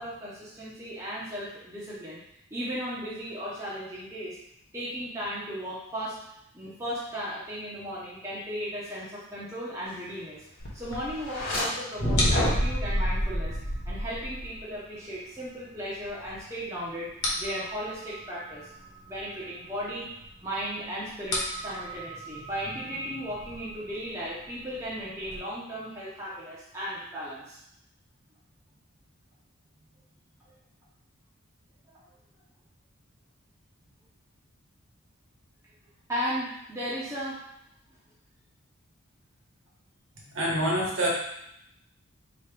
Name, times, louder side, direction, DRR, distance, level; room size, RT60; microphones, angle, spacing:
voice 1, 0.0-2.2 2.5-4.4 4.7-6.2 6.5-10.4 10.7-13.6 13.9-17.1 17.4-18.7 19.1-20.1 20.4-27.6 31.9-32.0 36.1-37.4, equal, 15° right, -8 dB, 0.8 m, -36 dB
sound 1, 10.6-25.4, left 1 dB, 85° left, 1.1 m, -39 dB
sound 2, 11.2-11.6 12.0-14.6, equal, 40° left, 1.2 m, -27 dB
voice 2, 40.3-41.1, right 1 dB, 60° right, -4 dB, 1.3 m, -26 dB
4.4 x 3.0 x 3.3 m, 0.78 s
head